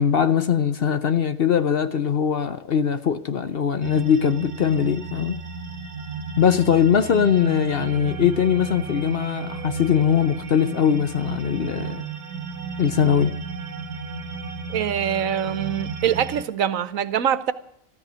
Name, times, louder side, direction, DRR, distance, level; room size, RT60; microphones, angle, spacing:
voice 1, 0.0-5.4 6.4-12.0 12.8-13.3, left 8 dB, 50° left, 0.8 m, -21 dB
sound 1, 3.8-16.4, right 4 dB, 60° right, 1.5 m, -33 dB
voice 2, 14.7-17.5, right 9 dB, 80° right, 1.2 m, -24 dB
14.5 x 13.5 x 6.2 m
omnidirectional pair, 1.4 m